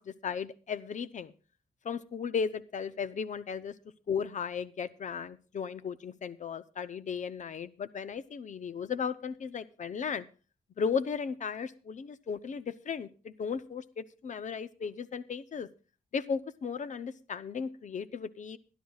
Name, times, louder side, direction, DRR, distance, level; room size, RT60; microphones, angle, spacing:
voice 1, 0.0-1.3 1.8-3.7 4.1-10.2 10.8-15.7 16.1-18.6, left 6 dB, 55° left, 13 dB, 0.6 m, -35 dB
23.0 x 11.0 x 2.4 m, 0.36 s
wide cardioid pair, 145°, 15 cm